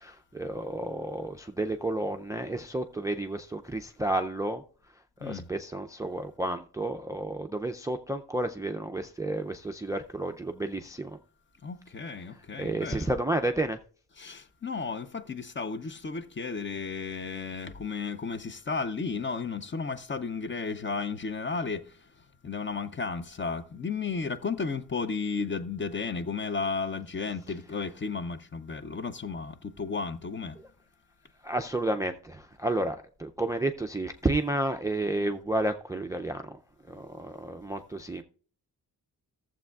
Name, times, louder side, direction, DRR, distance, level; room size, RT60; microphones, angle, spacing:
voice 1, 0.0-4.6 5.2-11.1 12.6-13.8 31.4-36.4 36.9-38.2, right 1 dB, 10° right, 0.4 m, -31 dB
voice 2, 11.6-13.1 14.1-22.0 22.4-30.6, left 4 dB, 30° left, 0.6 m, -33 dB
15.0 x 7.3 x 2.3 m
wide cardioid pair, 135°, 38 cm